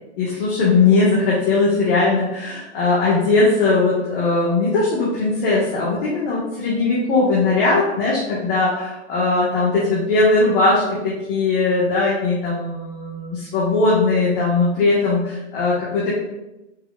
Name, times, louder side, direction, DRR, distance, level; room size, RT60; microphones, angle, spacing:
voice 1, 0.2-16.1, left 3 dB, 45° left, -7 dB, 1.5 m, -19 dB
4.8 x 4.3 x 2.4 m, 0.97 s
hypercardioid pair, 120°, 36 cm